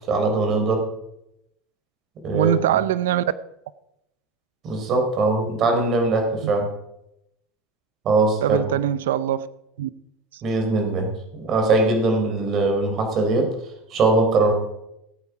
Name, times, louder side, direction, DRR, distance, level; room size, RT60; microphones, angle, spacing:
voice 1, 0.1-0.9 2.2-2.5 4.6-6.7 8.0-8.6 10.4-13.5 13.9-14.5, right 3 dB, 40° right, 4 dB, 4.0 m, -21 dB
voice 2, 2.3-3.3 8.4-9.5 9.8-9.9 10.3-10.4, right 11 dB, 90° right, 16 dB, 0.6 m, -22 dB
18.5 x 8.5 x 4.9 m, 0.84 s
supercardioid pair, 115°, 0 cm